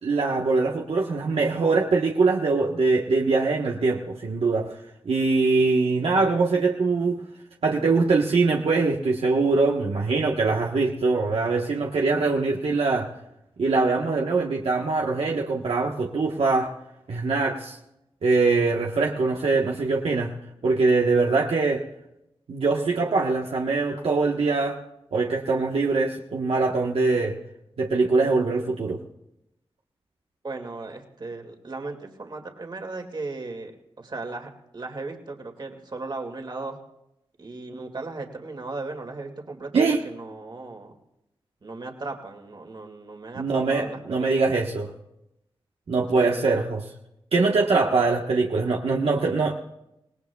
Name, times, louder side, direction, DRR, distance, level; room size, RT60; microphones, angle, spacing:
voice 1, 0.0-4.7 5.0-7.2 7.6-13.1 13.6-16.7 17.1-17.8 18.2-20.3 20.6-21.8 22.5-24.8 25.1-27.3 27.8-29.0 39.7-40.0 43.3-44.9 45.9-46.8 47.3-49.6, right 3 dB, 75° right, -1 dB, 1.3 m, -23 dB
voice 2, 30.4-33.7 34.0-36.8 37.4-40.9 41.6-44.4 46.1-46.6, right 3 dB, 50° right, 3 dB, 2.2 m, -36 dB
26.5 x 18.5 x 2.3 m, 0.85 s
wide cardioid pair, 100°, 10 cm